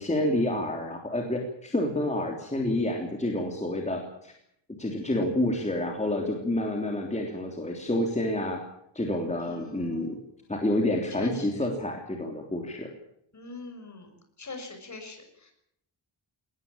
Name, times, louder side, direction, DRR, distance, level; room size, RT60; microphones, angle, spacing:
voice 1, 0.0-4.3 4.8-8.6 8.9-10.2 10.5-12.9, left 1 dB, 15° left, 2 dB, 3.4 m, -28 dB
voice 2, 9.4-10.1 11.2-11.7 13.3-14.1 14.4-15.5, left 3 dB, 40° left, 5 dB, 6.6 m, -42 dB
21.5 x 19.0 x 8.9 m, 0.73 s
wide cardioid pair, 160°, 46 cm